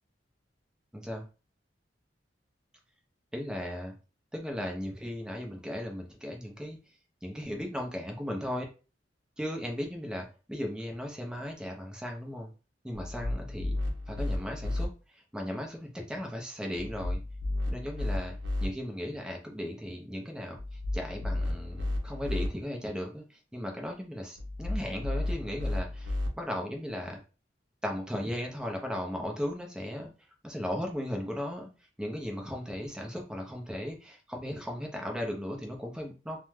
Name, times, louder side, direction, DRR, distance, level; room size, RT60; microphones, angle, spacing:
voice 1, 0.9-1.2 3.3-3.9 4.3-6.8 7.2-8.6 9.4-12.5 12.8-13.8 14.1-14.9 15.3-17.2 17.7-18.3 18.6-20.6 20.9-23.2 23.5-27.2 27.8-30.1 30.4-31.7 32.0-36.4, equal, 5° right, 1 dB, 0.6 m, -36 dB
sound 1, 12.9-14.9 16.7-18.7 20.6-22.5 24.4-26.3, left 1 dB, 85° right, 0.6 m, -32 dB
2.6 x 2.2 x 3.2 m, 0.33 s
head